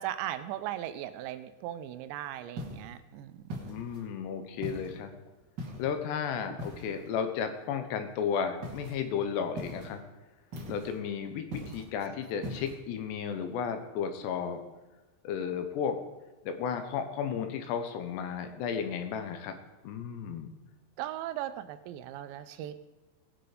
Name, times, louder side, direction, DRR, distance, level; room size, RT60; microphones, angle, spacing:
voice 1, 0.0-3.6 21.0-22.8, right 12 dB, 85° right, 11 dB, 2.8 m, -38 dB
sound 1, 2.6-2.9 3.5-4.1 4.6-5.0 5.6-6.0 6.6-7.1 8.6-9.0 9.6-10.0 10.5-11.0 11.5-11.9 12.4-12.8, equal, 40° right, 1.5 m, -40 dB
voice 2, 3.7-5.1 5.8-10.0 10.7-14.6 15.2-16.0 16.5-19.5 19.8-20.5, left 7 dB, 75° left, 8 dB, 3.1 m, -33 dB
19.5 x 6.8 x 5.0 m, 1.1 s
omnidirectional pair, 5.2 m